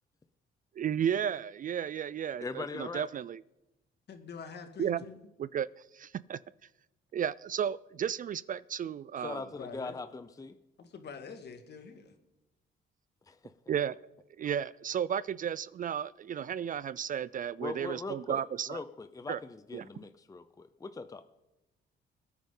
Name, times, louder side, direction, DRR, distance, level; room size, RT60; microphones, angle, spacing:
voice 1, 0.8-3.4 4.8-5.0 5.4-5.7 5.9-6.4 7.1-9.4 13.7-14.0 14.4-18.8 19.3-19.4 19.7-19.9, right 9 dB, 45° right, 20 dB, 0.4 m, -33 dB
voice 2, 2.4-3.1 9.2-10.6 13.3-13.5 17.6-18.4 18.7-21.2, left 3 dB, 15° left, 11 dB, 0.6 m, -41 dB
voice 3, 4.1-5.2 9.3-10.0 10.8-12.1, left 5 dB, 55° left, 6 dB, 1.9 m, -46 dB
22.0 x 9.3 x 3.9 m, 0.99 s
cardioid pair, 90°, 20 cm